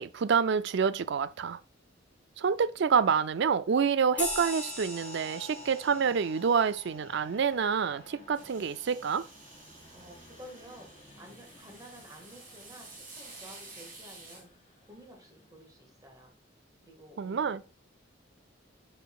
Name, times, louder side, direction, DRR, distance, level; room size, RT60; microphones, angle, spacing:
voice 1, 0.0-1.6 2.4-9.3 17.2-17.6, right 6 dB, 65° right, 0.4 m, -27 dB
sound 1, 4.2-9.1, left 1 dB, 10° left, 3.1 m, -41 dB
sound 2, 5.0-16.1, left 1 dB, 30° left, 2.6 m, -58 dB
sound 3, 8.3-14.4, right 3 dB, 45° right, 2.7 m, -51 dB
voice 2, 9.9-14.5 14.8-16.3 16.8-17.5, equal, 20° right, 1.9 m, -52 dB
6.8 x 6.5 x 2.4 m
head